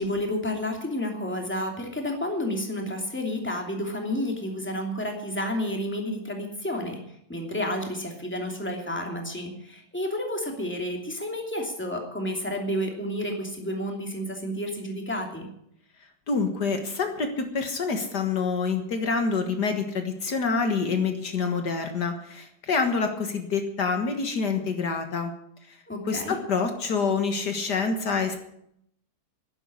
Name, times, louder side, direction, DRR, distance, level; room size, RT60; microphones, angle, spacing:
voice 1, 0.0-7.0 7.3-15.5 25.9-26.4, left 1 dB, 5° left, 2 dB, 2.7 m, -30 dB
voice 2, 16.3-25.3 25.7-25.8 26.1-28.4, left 4 dB, 65° left, 6 dB, 2.1 m, -27 dB
11.0 x 10.5 x 9.9 m, 0.73 s
omnidirectional pair, 1.9 m